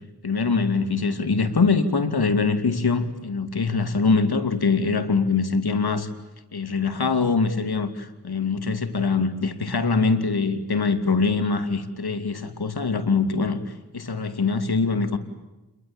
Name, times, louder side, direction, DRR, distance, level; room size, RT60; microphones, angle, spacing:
voice 1, 0.2-6.1 6.5-13.6 13.9-15.2, left 4 dB, 70° left, 10 dB, 2.8 m, -23 dB
29.0 x 22.0 x 8.9 m, 1.1 s
cardioid pair, 45°, 39 cm